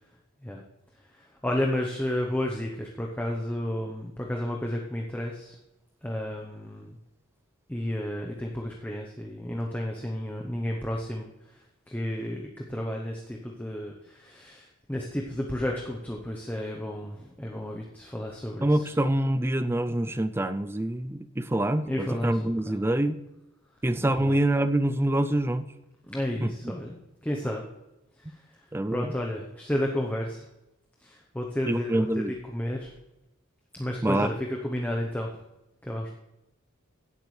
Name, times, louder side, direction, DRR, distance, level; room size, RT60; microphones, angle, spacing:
voice 1, 0.9-5.6 6.0-7.0 7.7-18.9 21.8-22.8 24.0-24.4 26.0-27.0 27.2-27.7 28.2-30.5 31.0-32.9 33.7-35.3 35.8-36.1, left 1 dB, 10° left, 0 dB, 0.8 m, -32 dB
voice 2, 18.6-23.2 23.8-25.6 26.4-26.5 28.7-29.1 31.7-32.3 34.0-34.3, right 1 dB, 10° right, 12 dB, 0.4 m, -26 dB
16.5 x 8.1 x 3.2 m, 0.94 s
head